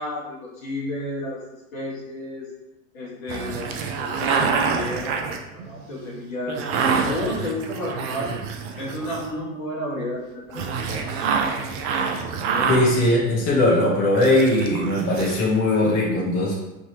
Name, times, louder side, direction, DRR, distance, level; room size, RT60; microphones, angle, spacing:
voice 1, 0.0-1.4 1.7-2.5 2.9-5.2 5.5-8.4 8.7-11.0 12.5-12.7 13.2-13.5, left 1 dB, 70° left, -6 dB, 1.4 m, -32 dB
sound 1, 3.3-9.5 10.5-13.8 14.1-15.4, right 5 dB, 35° right, 0.4 m, -27 dB
voice 2, 12.7-16.5, left 1 dB, 35° left, -5 dB, 0.9 m, -20 dB
3.3 x 2.7 x 2.8 m, 0.99 s
figure-of-eight pair, 85°, 42 cm